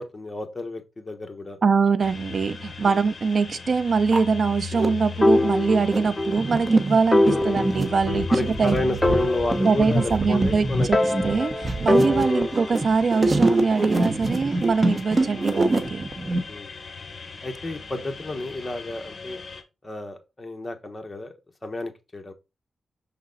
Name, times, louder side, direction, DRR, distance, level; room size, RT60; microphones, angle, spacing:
voice 1, 0.0-1.6 2.8-3.0 7.2-7.6 8.3-10.0 10.3-11.1 12.3-12.5 15.3-15.5 16.5-16.7 17.4-19.4 19.8-21.3 21.6-22.3, left 2 dB, 25° left, 1.2 m, -31 dB
voice 2, 1.6-8.3 8.6-8.8 9.6-16.1, right 5 dB, 55° right, 0.3 m, -23 dB
sound 1, 2.0-19.6, left 5 dB, 45° left, 1.3 m, -39 dB
sound 2, 2.7-2.8 3.5-3.6 3.9-4.9 5.5-16.4, right 2 dB, 35° right, 1.1 m, -25 dB
sound 3, 5.2-6.4 6.7-6.8 7.1-8.6 9.0-10.5 10.9-12.8, left 1 dB, 10° left, 1.5 m, -23 dB
6.4 x 4.0 x 3.9 m
wide cardioid pair, 110°, 0 cm